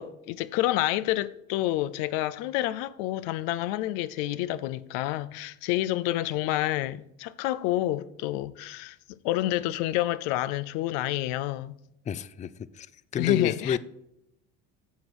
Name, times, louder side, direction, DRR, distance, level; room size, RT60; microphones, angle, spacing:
voice 1, 0.0-9.0 9.2-11.7 13.2-13.8, left 15 dB, 85° left, 0.5 m, -28 dB
voice 2, 12.1-12.5 12.8-12.9 13.1-13.8, left 8 dB, 25° left, 0.4 m, -28 dB
9.2 x 6.1 x 4.8 m
supercardioid pair, 100°, 32 cm